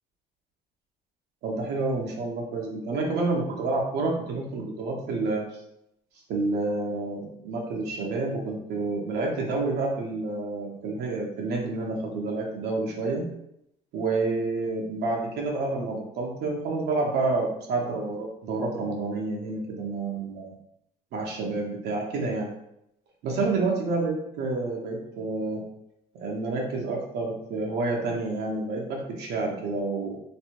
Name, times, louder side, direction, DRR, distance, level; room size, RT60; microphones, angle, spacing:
voice 1, 1.4-5.5 6.3-13.2 13.9-20.5 21.1-22.5 23.2-25.6 26.1-30.2, right 3 dB, 75° right, -2 dB, 0.9 m, -29 dB
3.2 x 2.7 x 2.9 m, 0.78 s
cardioid pair, 110°, 17 cm